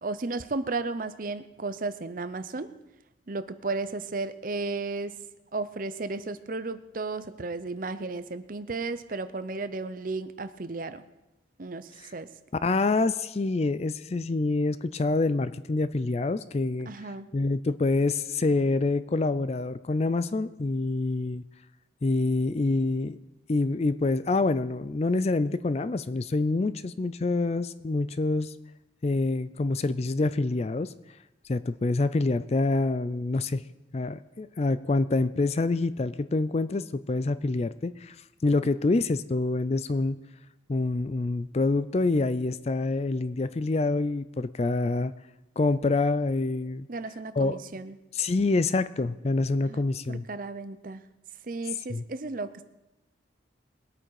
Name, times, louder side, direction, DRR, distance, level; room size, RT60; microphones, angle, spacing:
voice 1, 0.0-2.8 3.3-5.2 5.5-11.0 11.6-12.3 16.9-17.3 46.9-47.9 49.6-51.0 51.4-52.6, right 3 dB, 45° right, 12 dB, 0.6 m, -34 dB
voice 2, 12.6-16.9 17.3-21.4 22.0-23.2 23.5-28.5 29.0-30.9 31.5-33.6 33.9-38.2 38.4-40.2 40.7-45.1 45.6-46.9 47.4-47.6 48.1-50.3 51.9-52.0, left 3 dB, 35° left, 14 dB, 0.4 m, -26 dB
21.0 x 8.8 x 4.8 m, 0.98 s
head